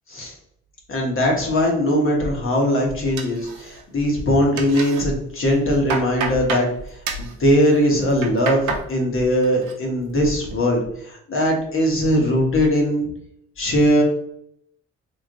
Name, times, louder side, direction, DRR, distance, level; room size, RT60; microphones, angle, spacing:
voice 1, 0.9-6.7 7.2-13.1 13.6-14.0, equal, 45° left, 0 dB, 1.3 m, -20 dB
sound 1, 3.2-4.0 4.3-5.0 5.5-6.7 7.0-7.3 8.0-8.9 9.2-9.7 10.1-10.5, right 4 dB, 80° right, 0.8 m, -29 dB
3.2 x 3.2 x 2.6 m, 0.72 s
cardioid pair, 90°, 30 cm